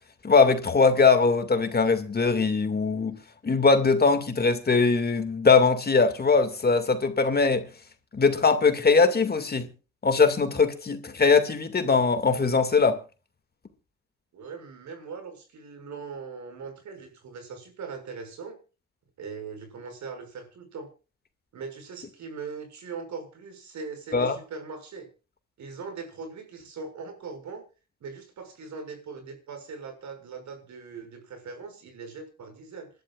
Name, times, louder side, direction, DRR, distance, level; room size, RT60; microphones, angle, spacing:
voice 1, 0.2-3.2 3.4-7.7 8.1-9.7 10.0-13.0 24.1-24.3, left 4 dB, 30° left, 2.2 m, -21 dB
voice 2, 14.3-18.6 19.2-20.9 21.5-25.1 25.6-27.6 28.0-32.9, right 4 dB, 70° right, 6.3 m, -40 dB
27.0 x 12.0 x 2.5 m
cardioid pair, 90°, 30 cm